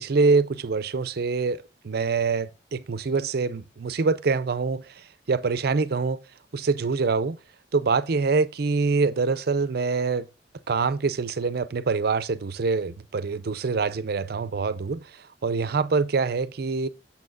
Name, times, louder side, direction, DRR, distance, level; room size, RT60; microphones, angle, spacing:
voice 1, 0.0-6.2 6.5-7.4 7.7-10.3 10.7-16.9, right 4 dB, 60° right, 0.5 m, -25 dB
8.5 x 7.2 x 2.4 m
head